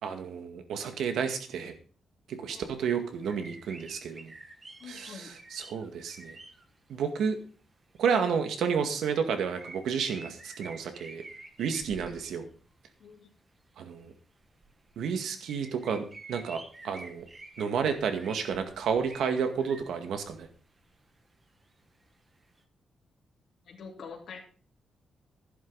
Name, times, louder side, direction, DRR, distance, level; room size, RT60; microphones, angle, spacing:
voice 1, 0.0-1.7 2.3-4.3 4.9-6.4 6.9-7.4 8.0-11.2 11.6-12.5 13.8-14.1 15.0-17.3 17.6-20.5, right 6 dB, 90° right, 7 dB, 2.0 m, -31 dB
sound 1, 2.8-2.9 3.2-6.7 7.4-7.5 8.0-8.4 8.7-8.9 9.6-12.7 13.9-14.1 14.4-15.1 15.4-20.9 21.4-21.5 21.7-21.8 22.6-22.7, right 2 dB, 25° right, 1.5 m, -49 dB
voice 2, 4.8-5.3 13.0-13.3 23.7-24.4, left 5 dB, 65° left, -1 dB, 2.6 m, -45 dB
11.5 x 11.0 x 4.1 m, 0.40 s
wide cardioid pair, 145°, 0 cm